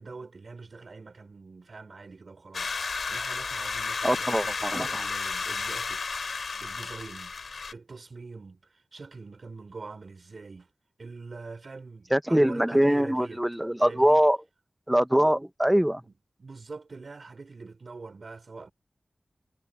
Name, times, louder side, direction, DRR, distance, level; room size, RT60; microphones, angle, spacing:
voice 1, 0.0-6.2 6.6-7.3 7.7-10.7 11.0-13.4 13.8-14.2 16.1-16.2 16.4-18.7, right 4 dB, 70° right, 3.8 m, -44 dB
sound 1, 2.5-7.7, left 4 dB, 90° left, 4.9 m, -32 dB
voice 2, 4.0-5.0 12.1-14.4 14.9-16.0, equal, 10° right, 0.8 m, -23 dB
wide cardioid pair, 60°, 0 cm